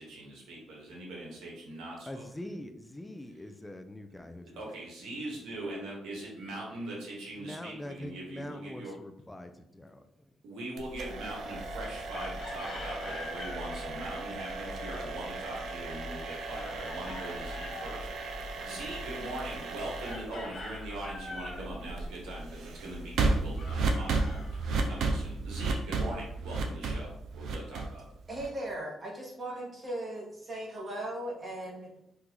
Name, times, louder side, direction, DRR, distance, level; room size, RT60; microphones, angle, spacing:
voice 1, 0.0-2.2 4.6-8.9 10.4-28.0, right 1 dB, 90° right, -3 dB, 1.0 m, -41 dB
voice 2, 2.1-4.7 7.4-10.1, left 1 dB, 10° left, 7 dB, 0.3 m, -43 dB
sound 1, 10.8-28.7, right 3 dB, 70° right, 0.5 m, -35 dB
Chicken rooster, 12.1-13.6 16.6-17.9 20.0-21.7 23.6-25.1, left 2 dB, 55° left, 0.9 m, -44 dB
voice 3, 28.3-31.9, right 1 dB, 35° right, -2 dB, 1.0 m, -38 dB
3.7 x 2.3 x 2.9 m, 0.76 s
cardioid pair, 90°, 0 cm